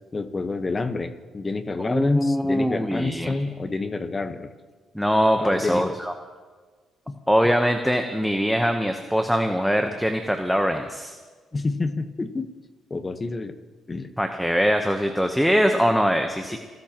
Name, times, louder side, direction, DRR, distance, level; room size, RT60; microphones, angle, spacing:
voice 1, 0.1-4.5 5.4-5.8 7.1-7.2 11.5-12.5 12.9-13.5 13.9-14.1 16.5-16.6, left 3 dB, 30° left, 8 dB, 1.2 m, -28 dB
voice 2, 1.8-3.3 4.9-6.1 7.3-11.1 14.2-16.6, equal, ahead, 5 dB, 1.0 m, -22 dB
29.5 x 13.5 x 3.0 m, 1.4 s
cardioid pair, 90°, 0 cm